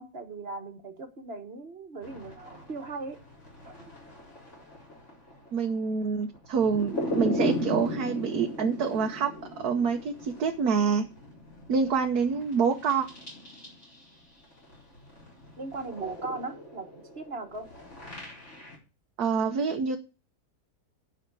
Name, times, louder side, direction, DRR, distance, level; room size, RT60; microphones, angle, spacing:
voice 1, 0.0-3.2 3.6-3.9 15.6-16.9 17.1-17.7, right 3 dB, 40° right, 6 dB, 1.6 m, -38 dB
sound 1, 2.0-14.2 14.4-18.8, equal, 45° left, 4.8 m, -37 dB
voice 2, 5.5-9.3 9.6-11.1 11.7-13.1 19.2-20.0, right 5 dB, 70° right, 3 dB, 1.4 m, -26 dB
9.3 x 5.8 x 8.1 m, 0.32 s
omnidirectional pair, 1.7 m